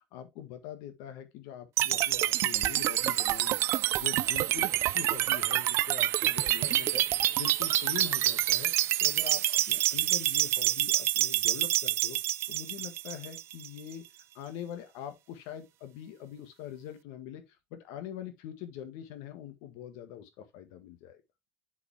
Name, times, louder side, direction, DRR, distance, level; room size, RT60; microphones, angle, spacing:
voice 1, 0.1-3.6 3.9-8.7 9.0-12.2 12.5-14.0 14.4-17.4 17.7-21.2, left 10 dB, 65° left, 1.6 m, -43 dB
sound 1, 1.8-13.8, right 14 dB, 40° right, 0.3 m, -27 dB
8.0 x 5.1 x 3.5 m
cardioid pair, 160°, 7 cm